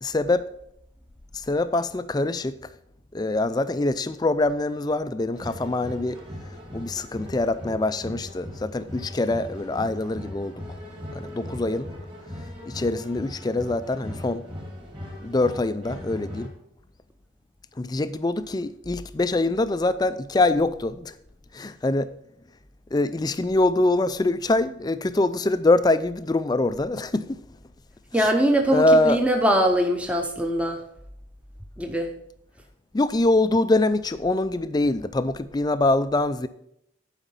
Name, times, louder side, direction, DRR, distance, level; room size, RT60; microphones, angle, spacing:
voice 1, 0.0-0.4 1.3-2.6 3.1-6.2 6.7-10.5 11.1-11.9 12.7-14.4 15.2-16.5 17.8-21.1 21.5-22.1 22.9-27.4 28.2-28.3 28.7-29.2 32.9-36.5, left 2 dB, 20° left, 0.3 m, -24 dB
sound 1, 5.3-16.5, left 1 dB, 25° right, 2.1 m, -39 dB
voice 2, 28.1-30.8 31.8-32.1, equal, 5° right, 0.7 m, -22 dB
11.5 x 5.0 x 5.4 m
head